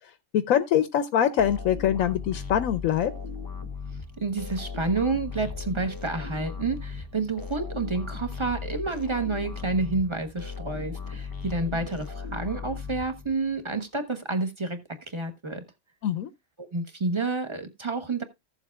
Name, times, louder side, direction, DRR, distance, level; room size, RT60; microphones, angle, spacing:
voice 1, 0.3-3.1 16.0-16.3, left 10 dB, 85° left, 1.1 m, -23 dB
sound 1, 1.4-13.6, left 5 dB, 20° left, 0.6 m, -37 dB
voice 2, 4.2-14.8 15.1-15.6 16.6-18.2, right 3 dB, 20° right, 1.2 m, -29 dB
15.5 x 7.2 x 2.3 m
omnidirectional pair, 1.4 m